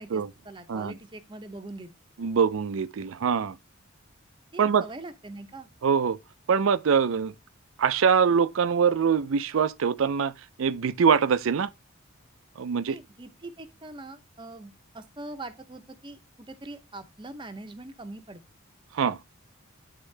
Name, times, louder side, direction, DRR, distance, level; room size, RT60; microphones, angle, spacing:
voice 1, 0.0-1.9 4.5-5.7 12.9-18.4, right 2 dB, 25° right, 0.6 m, -42 dB
voice 2, 2.2-3.6 4.6-4.9 5.8-6.2 6.5-7.3 7.8-11.7 12.6-13.0 18.9-19.2, right 6 dB, 70° right, 0.4 m, -24 dB
9.7 x 3.7 x 3.2 m
head